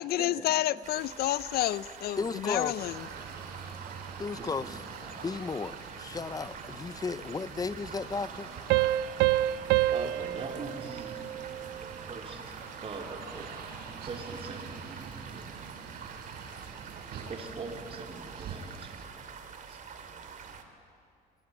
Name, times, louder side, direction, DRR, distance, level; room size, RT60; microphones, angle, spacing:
voice 1, 0.0-3.1, left 14 dB, 65° left, 19 dB, 0.6 m, -30 dB
sound 1, 0.8-20.6, right 6 dB, 50° right, 2.7 m, -46 dB
voice 2, 2.2-2.7 4.2-4.7 5.2-8.5, left 4 dB, 20° left, 17 dB, 0.6 m, -34 dB
sound 2, 2.8-19.1, right 6 dB, 70° right, 4.2 m, -45 dB
sound 3, 8.7-12.0, right 15 dB, 90° right, 0.6 m, -28 dB
voice 3, 9.9-11.3 11.8-12.5 12.8-13.5 14.1-15.6 17.3-19.3 19.7-19.9, right 3 dB, 35° right, 3 dB, 3.9 m, -42 dB
25.5 x 22.5 x 9.8 m, 2.4 s
cardioid pair, 110°, 17 cm